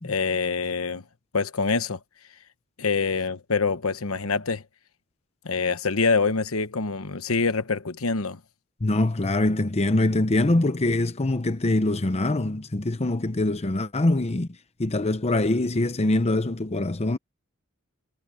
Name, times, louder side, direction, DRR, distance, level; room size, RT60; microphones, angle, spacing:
voice 1, 0.0-1.0 1.3-2.0 2.8-4.6 5.4-8.4, left 4 dB, 75° left, 1.1 m, -25 dB
voice 2, 8.8-14.5 14.8-17.2, left 2 dB, 30° left, 0.8 m, -23 dB
head